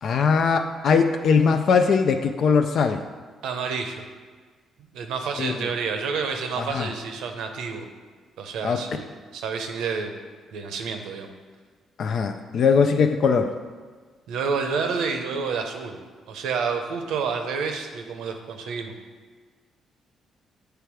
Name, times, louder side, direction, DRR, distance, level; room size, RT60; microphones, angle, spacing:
voice 1, 0.0-3.0 5.4-5.7 6.6-6.9 8.6-8.8 12.0-13.6, left 5 dB, 60° left, 6 dB, 0.4 m, -21 dB
voice 2, 3.4-4.0 4.9-7.9 8.4-9.1 9.3-10.1 10.5-11.3 14.3-16.0 16.3-18.9, right 5 dB, 85° right, 5 dB, 0.7 m, -29 dB
8.0 x 3.4 x 4.7 m, 1.5 s
cardioid pair, 90°, 0 cm